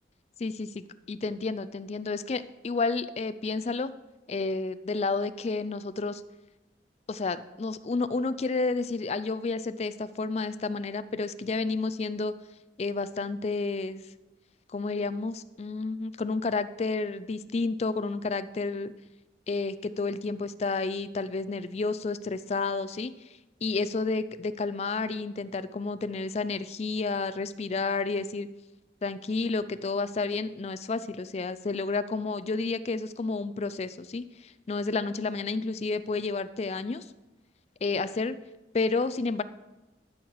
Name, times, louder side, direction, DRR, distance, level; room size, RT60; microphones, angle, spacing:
voice 1, 0.4-3.9 4.3-6.2 7.1-12.3 12.8-14.0 14.7-18.9 19.5-23.1 23.6-28.5 29.0-37.1 37.8-38.3 38.7-39.4, left 3 dB, 35° left, 13 dB, 0.3 m, -30 dB
12.5 x 4.7 x 6.4 m, 1.0 s
head